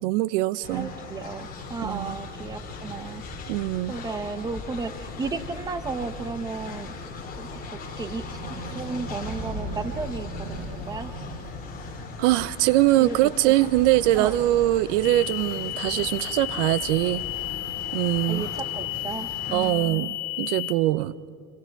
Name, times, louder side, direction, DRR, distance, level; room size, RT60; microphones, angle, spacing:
voice 1, 0.0-0.9 1.8-2.1 3.5-3.9 12.2-17.2 17.9-18.5 19.5-21.3, right 16 dB, 60° right, 18 dB, 0.6 m, -23 dB
Train, 0.6-19.7, left 3 dB, 20° left, 3.4 m, -38 dB
voice 2, 0.7-3.2 3.9-6.9 7.4-8.4 8.7-11.1 13.0-13.5 14.1-14.4 18.3-20.1, right 4 dB, 10° right, 11 dB, 0.7 m, -34 dB
sound 1, 8.1-12.6, right 3 dB, 80° right, 6.5 m, -40 dB
sound 2, 15.0-20.7, left 17 dB, 40° left, 3.7 m, -32 dB
27.0 x 24.5 x 4.6 m, 2.2 s
supercardioid pair, 140°, 43 cm